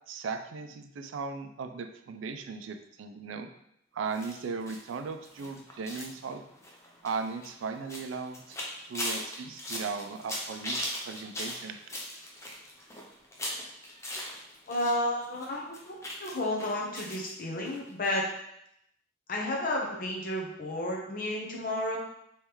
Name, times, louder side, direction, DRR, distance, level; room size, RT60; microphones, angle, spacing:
voice 1, 0.1-3.5 3.9-6.4 7.0-8.6 8.8-11.8, right 5 dB, 80° right, 8 dB, 0.3 m, -37 dB
sound 1, 4.1-15.0 15.2-17.3 17.6-17.8 18.0-18.1, left 1 dB, 15° left, 0.6 m, -39 dB
voice 2, 14.7-18.2 19.3-22.0, left 1 dB, 45° left, -2 dB, 0.8 m, -32 dB
3.5 x 3.1 x 3.0 m, 0.77 s
head